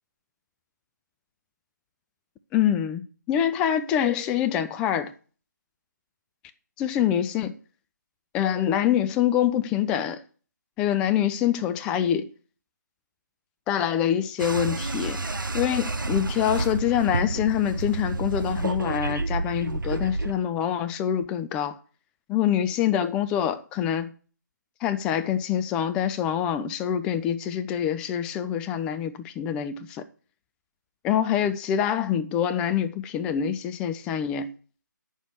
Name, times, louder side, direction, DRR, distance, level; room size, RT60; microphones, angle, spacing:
voice 1, 2.5-3.0 3.3-5.1 6.8-7.5 8.3-10.2 10.8-12.3 13.7-15.2 15.5-21.8 22.3-24.1 24.8-30.0 31.0-34.5, left 9 dB, 10° left, 0.4 m, -25 dB
sound 1, 14.4-20.3, right 2 dB, 80° right, 0.9 m, -29 dB
9.9 x 6.7 x 7.9 m
figure-of-eight pair, 155°, 11 cm